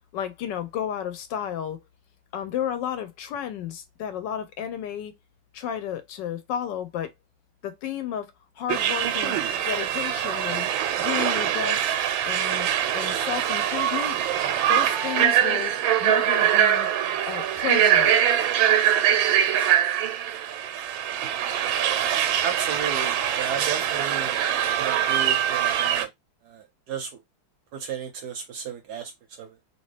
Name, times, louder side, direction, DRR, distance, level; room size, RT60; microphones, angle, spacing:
voice 1, 0.1-1.8 2.3-5.1 5.5-7.1 7.6-8.3 8.6-9.4 9.6-10.7 11.0-11.9 12.2-14.2 14.7-15.7 16.0-16.9 17.3-18.1, left 9 dB, 75° left, 1.1 m, -32 dB
sound 1, 8.7-26.1, right 10 dB, 90° right, 1.4 m, -23 dB
voice 2, 22.4-24.4 24.8-26.1 26.4-27.2 27.7-29.5, right 7 dB, 70° right, 1.0 m, -34 dB
2.9 x 2.9 x 3.1 m
omnidirectional pair, 2.1 m